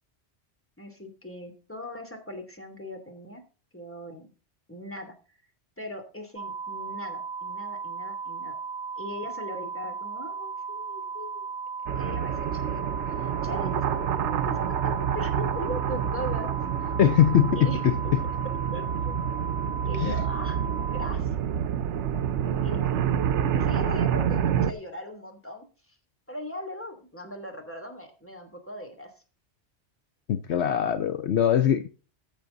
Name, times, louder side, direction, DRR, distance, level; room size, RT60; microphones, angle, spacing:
voice 1, 0.8-3.4 3.7-4.3 4.7-5.2 5.8-8.5 9.0-11.4 11.9-16.5 16.8-16.9 17.6-17.8 18.7-19.2 19.9-20.6 20.9-21.4 22.6-23.0 23.4-26.0 26.3-29.1, left 1 dB, 10° left, 2.8 m, -39 dB
sound 1, 6.4-21.1, right 5 dB, 50° right, 0.9 m, -36 dB
sound 2, 11.9-24.7, right 9 dB, 75° right, 1.1 m, -28 dB
voice 2, 17.0-18.2 20.0-20.1 30.3-31.9, left 10 dB, 70° left, 1.0 m, -22 dB
15.5 x 6.9 x 3.9 m
omnidirectional pair, 1.2 m